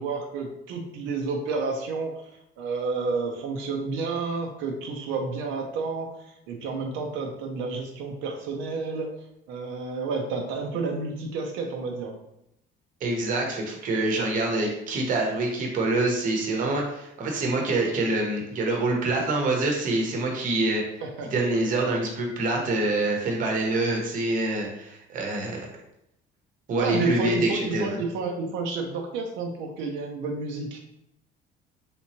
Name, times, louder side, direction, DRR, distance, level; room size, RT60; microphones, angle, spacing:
voice 1, 0.0-2.1 2.6-6.1 6.5-9.1 9.5-12.2 21.0-21.3 26.8-30.8, right 4 dB, 85° right, 2 dB, 0.5 m, -30 dB
voice 2, 13.0-20.8 21.3-25.6 26.7-28.0, right 2 dB, 45° right, 1 dB, 0.8 m, -26 dB
3.4 x 2.9 x 2.8 m, 0.78 s
cardioid pair, 155°, 20 cm